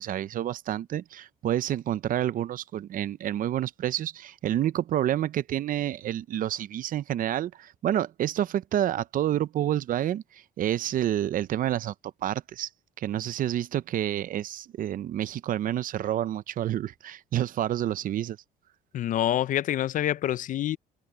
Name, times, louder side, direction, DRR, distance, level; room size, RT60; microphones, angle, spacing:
voice 1, 0.0-11.9 12.2-12.7 13.0-18.4, right 11 dB, 55° right, 0.7 m, -29 dB
voice 2, 18.9-20.8, left 12 dB, 50° left, 0.5 m, -26 dB
cardioid pair, 110°, 17 cm